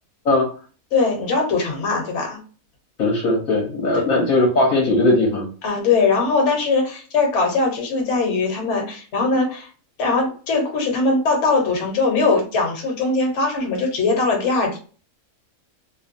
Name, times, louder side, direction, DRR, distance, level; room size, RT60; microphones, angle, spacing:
voice 1, 0.9-2.4 3.9-4.0 5.6-9.7 10.0-14.8, left 3 dB, 55° left, 1 dB, 1.1 m, -21 dB
voice 2, 3.0-5.5, left 2 dB, 75° left, -2 dB, 1.2 m, -18 dB
2.9 x 2.1 x 2.5 m, 0.39 s
omnidirectional pair, 1.5 m